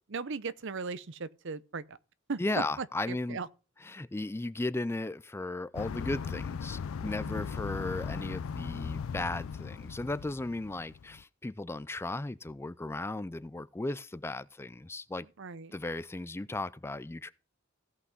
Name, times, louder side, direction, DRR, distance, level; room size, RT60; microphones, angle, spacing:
voice 1, 0.1-2.0 2.3-2.4 2.8-3.5 7.2-7.5 15.4-15.7, right 4 dB, 65° right, 0.7 m, -38 dB
voice 2, 2.4-3.4 3.9-15.3 15.7-17.3, left 2 dB, 10° left, 0.4 m, -36 dB
sound 1, 5.7-11.2, left 6 dB, 80° left, 0.4 m, -38 dB
16.5 x 5.7 x 3.9 m
head